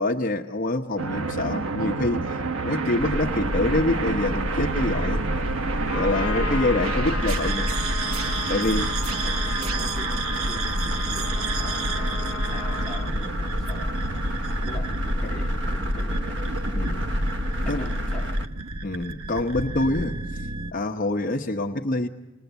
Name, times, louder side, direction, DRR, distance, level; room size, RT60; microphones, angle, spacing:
voice 1, 0.0-5.3 5.9-7.7 8.5-8.9 16.7-17.1 17.7-17.9 18.8-20.4 20.7-22.1, left 2 dB, 40° left, 2 dB, 1.0 m, -26 dB
sound 1, 1.0-20.7, right 4 dB, 85° right, 1.0 m, -31 dB
sound 2, 3.0-18.5, equal, 60° right, 1.2 m, -28 dB
Trumpet, 5.9-13.1, left 5 dB, 85° left, 1.4 m, -35 dB
voice 2, 6.0-6.8 9.0-14.0 14.6-16.5 17.6-18.4, left 1 dB, 5° left, -5 dB, 1.9 m, -42 dB
28.5 x 20.5 x 8.1 m, 1.2 s
head